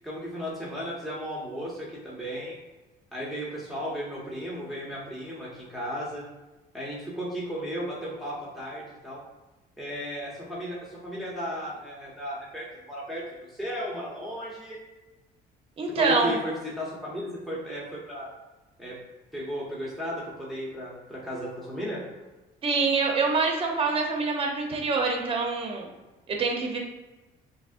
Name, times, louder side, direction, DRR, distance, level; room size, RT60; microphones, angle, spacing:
voice 1, 0.0-2.6 3.1-6.3 6.7-9.2 9.8-14.8 16.0-18.3 18.8-19.0 19.3-22.0, equal, ahead, -6 dB, 0.8 m, -35 dB
voice 2, 15.8-16.4 22.6-25.9 26.3-26.8, right 4 dB, 35° right, 1 dB, 0.8 m, -25 dB
6.0 x 2.0 x 2.5 m, 1.1 s
cardioid pair, 110°, 17 cm